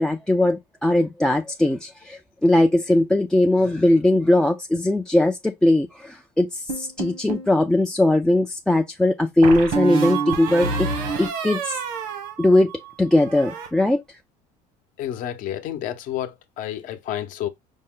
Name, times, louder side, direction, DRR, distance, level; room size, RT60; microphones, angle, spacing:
voice 1, 0.0-6.5 6.7-10.9 11.2-11.8 12.4-12.7 13.0-14.0, left 1 dB, 5° left, 0.3 m, -19 dB
sound 1, 6.7-7.5 9.4-12.9 13.2-13.7, right 4 dB, 80° right, 1.3 m, -27 dB
voice 2, 15.0-17.5, left 11 dB, 60° left, 0.8 m, -30 dB
5.3 x 2.1 x 3.6 m
cardioid pair, 130°, 16 cm